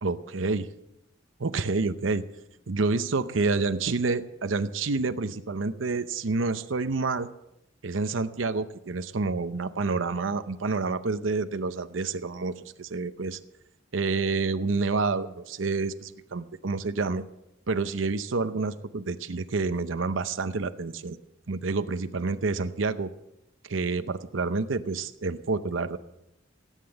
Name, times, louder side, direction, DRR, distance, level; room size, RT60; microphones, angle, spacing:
voice 1, 0.0-0.7 1.4-2.3 2.7-7.3 7.8-13.4 13.9-17.2 17.7-21.2 21.5-23.1 23.7-26.0, right 3 dB, 85° right, 10 dB, 0.7 m, -28 dB
17.0 x 9.1 x 7.8 m, 0.88 s
head